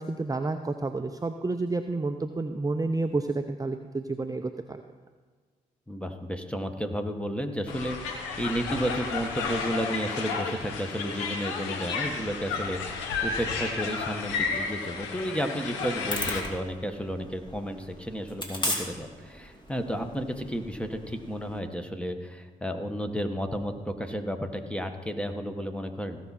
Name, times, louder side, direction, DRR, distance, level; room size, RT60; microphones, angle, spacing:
voice 1, 0.0-4.8, right 3 dB, 20° right, 7 dB, 0.6 m, -30 dB
voice 2, 5.9-26.2, equal, 5° left, 6 dB, 1.4 m, -32 dB
sound 1, 7.7-16.4, left 4 dB, 90° left, 1.0 m, -32 dB
sound 2, 16.1-21.6, left 1 dB, 25° left, 2.7 m, -37 dB
17.0 x 6.1 x 4.3 m, 1.5 s
hypercardioid pair, 40°, 19 cm